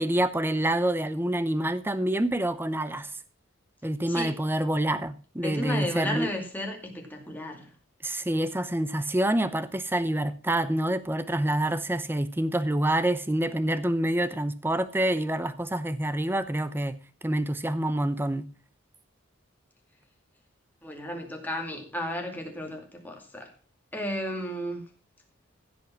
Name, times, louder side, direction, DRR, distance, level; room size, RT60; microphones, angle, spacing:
voice 1, 0.0-3.1 3.8-6.3 8.0-17.0 17.2-18.5, right 1 dB, 10° right, 0.7 m, -27 dB
voice 2, 5.4-7.7 20.8-23.5 23.9-24.8, left 1 dB, 10° left, 2.4 m, -33 dB
15.5 x 5.3 x 6.0 m
head